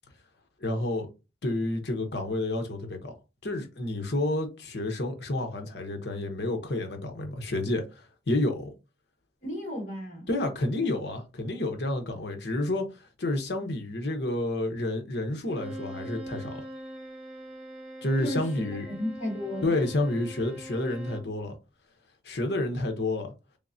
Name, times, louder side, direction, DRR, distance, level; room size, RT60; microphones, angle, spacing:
voice 1, 0.6-1.1 1.4-3.1 3.4-8.7 10.3-12.8 13.2-16.6 18.0-18.9 19.6-21.6 22.2-23.3, left 2 dB, 70° left, 0.9 m, -29 dB
voice 2, 9.4-10.3 18.2-19.7, left 1 dB, 45° left, 1.8 m, -34 dB
Bowed string instrument, 15.4-21.4, right 1 dB, 5° right, 1.5 m, -42 dB
3.6 x 3.5 x 2.6 m
head